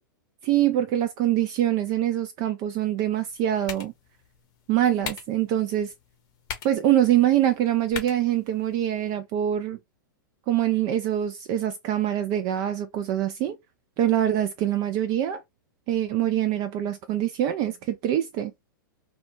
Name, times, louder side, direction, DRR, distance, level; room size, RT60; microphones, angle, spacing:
voice 1, 0.4-3.9 4.7-5.9 6.6-9.8 10.5-13.6 14.0-15.4 15.9-18.5, right 11 dB, 35° right, 0.3 m, -24 dB
sound 1, 3.1-9.1, left 7 dB, 35° left, 0.7 m, -42 dB
2.2 x 2.1 x 2.8 m
figure-of-eight pair, 105°, 11 cm